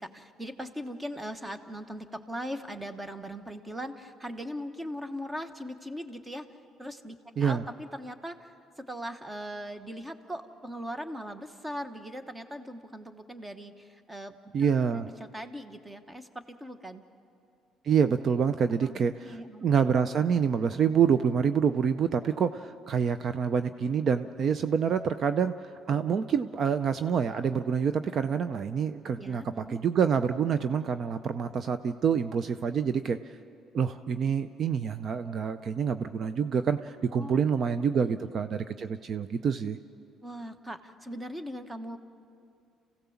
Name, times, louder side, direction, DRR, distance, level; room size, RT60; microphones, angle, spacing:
voice 1, 0.0-6.5 6.8-17.0 18.7-19.0 19.2-19.7 29.2-29.8 37.1-38.3 40.2-42.0, equal, 15° right, 9 dB, 1.2 m, -40 dB
voice 2, 14.5-15.1 17.8-33.2 33.7-39.8, right 7 dB, 50° right, 11 dB, 0.6 m, -27 dB
27.5 x 16.0 x 7.1 m, 2.4 s
cardioid pair, 105°, 0 cm